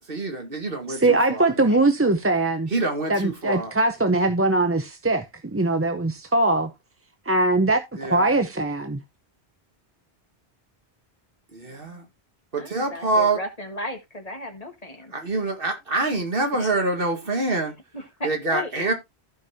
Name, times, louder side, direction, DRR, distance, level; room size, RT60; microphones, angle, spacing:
voice 1, 0.1-1.5 2.7-3.7 8.0-8.2 11.5-12.0 12.5-13.4 15.1-17.7 18.2-18.9, right 2 dB, 60° right, 2.0 m, -26 dB
voice 2, 1.0-2.7 3.1-5.2 5.5-6.7 7.3-9.0, right 2 dB, 15° right, 0.5 m, -21 dB
voice 3, 11.7-12.0 12.6-15.1 16.5-16.7 17.9-18.7, left 1 dB, 35° left, 1.6 m, -35 dB
15.0 x 5.3 x 2.7 m
omnidirectional pair, 1.1 m